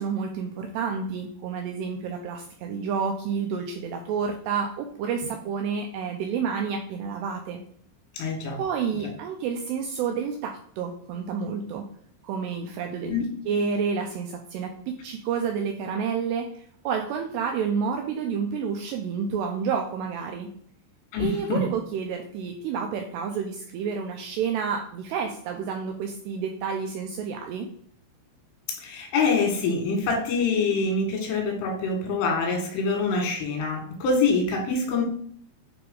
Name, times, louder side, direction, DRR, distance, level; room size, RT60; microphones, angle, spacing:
voice 1, 0.0-7.6 8.6-11.8 12.2-20.5 21.2-27.7, right 6 dB, 90° right, 3 dB, 2.4 m, -29 dB
voice 2, 8.1-8.6 13.1-13.3 21.1-21.7 28.8-35.0, left 4 dB, 90° left, 1 dB, 4.2 m, -25 dB
8.7 x 3.3 x 3.8 m, 0.62 s
omnidirectional pair, 5.4 m